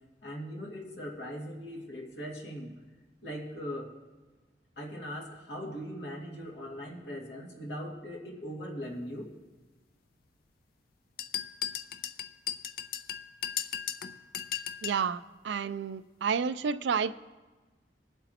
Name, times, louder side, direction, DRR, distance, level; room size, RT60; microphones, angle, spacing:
voice 1, 0.2-2.7 3.2-3.9 4.8-9.3, equal, 75° left, -2 dB, 2.4 m, -40 dB
sound 1, 11.2-15.0, left 9 dB, 55° left, 0.5 m, -36 dB
voice 2, 14.8-17.2, right 6 dB, 85° right, 15 dB, 0.4 m, -30 dB
21.5 x 7.9 x 2.9 m, 1.3 s
head